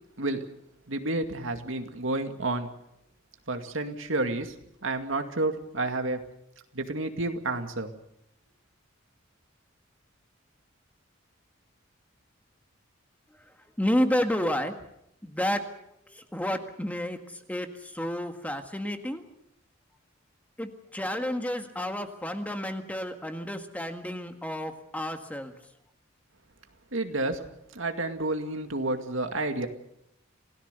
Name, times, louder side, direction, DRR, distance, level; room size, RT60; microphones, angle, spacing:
voice 1, 0.9-2.7 3.5-4.5 4.8-6.2 6.7-7.9 26.9-27.4 27.7-29.7, right 2 dB, 75° right, 6 dB, 2.3 m, -30 dB
voice 2, 13.8-14.7 15.2-15.6 16.3-17.2 17.5-17.7 18.0-19.2 20.6-25.5, equal, 10° left, 6 dB, 1.7 m, -30 dB
28.0 x 17.5 x 6.9 m, 0.78 s
head